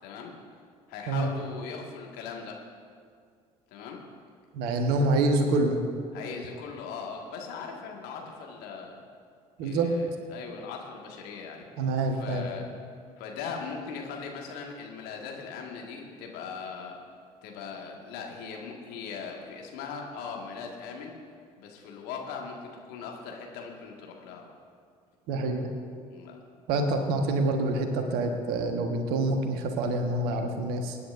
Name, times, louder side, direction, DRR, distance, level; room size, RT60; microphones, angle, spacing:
voice 1, 0.0-0.3 0.9-2.6 3.7-4.0 6.1-9.0 9.6-11.6 12.2-12.7 13.2-16.9 17.4-21.1 21.6-22.6 22.9-24.4 26.1-26.4, left 5 dB, 60° left, 1 dB, 1.8 m, -39 dB
voice 2, 4.5-5.8 9.6-9.9 11.8-12.5 25.3-25.7 26.7-31.0, right 2 dB, 60° right, 5 dB, 1.4 m, -26 dB
24.0 x 9.9 x 2.6 m, 2.2 s
figure-of-eight pair, 55°, 18 cm